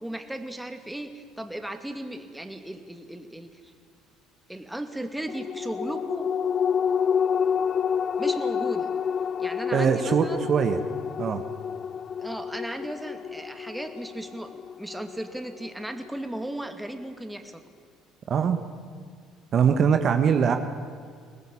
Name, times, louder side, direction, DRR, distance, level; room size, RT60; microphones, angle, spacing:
voice 1, 0.0-3.6 4.5-6.3 8.2-8.9 9.4-10.5 12.2-17.6, right 1 dB, 5° right, 7 dB, 2.4 m, -36 dB
sound 1, 5.3-16.1 16.5-16.6, left 7 dB, 45° left, 0.5 m, -29 dB
voice 2, 9.7-10.8 11.2-11.4 18.3-18.6 19.5-20.6, right 7 dB, 50° right, 7 dB, 1.4 m, -22 dB
22.5 x 19.0 x 8.6 m, 2.1 s
hypercardioid pair, 60°, 0 cm